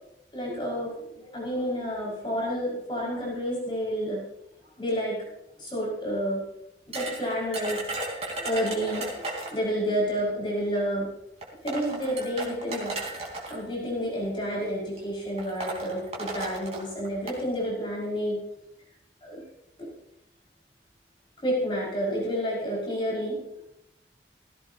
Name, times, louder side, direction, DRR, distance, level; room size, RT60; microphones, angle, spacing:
voice 1, 0.3-4.2 4.8-5.2 5.6-6.4 6.9-7.8 8.4-11.1 11.6-12.9 13.5-18.4 19.2-19.4 19.8-19.9 21.4-23.6, equal, 30° left, -5 dB, 5.7 m, -30 dB
sound 1, 6.9-9.7 10.8-10.9 11.4-13.6 14.5-14.7 15.0-15.1 15.4-17.4, right 2 dB, 35° right, 4.1 m, -35 dB
17.5 x 17.0 x 2.9 m, 0.83 s
head